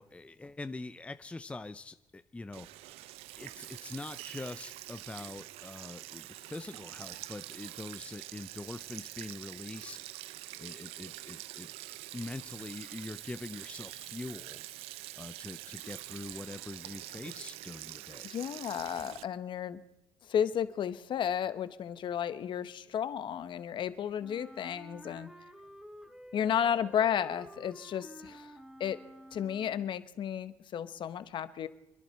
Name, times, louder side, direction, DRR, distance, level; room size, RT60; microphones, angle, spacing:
voice 1, 0.0-3.1 3.4-11.7 12.1-14.6 15.2-18.3, left 2 dB, 10° left, 11 dB, 0.6 m, -44 dB
Sink (filling or washing), 2.5-19.2, right 16 dB, 80° right, 0.5 m, -45 dB
voice 2, 18.2-19.8 20.3-25.3 26.3-28.5 28.8-29.0 29.3-31.7, left 9 dB, 55° left, 13 dB, 1.1 m, -33 dB
Wind instrument woodwind instrument, 24.2-30.0, equal, 5° right, 1.3 m, -51 dB
28.0 x 11.0 x 4.5 m, 0.95 s
supercardioid pair, 90°, 10 cm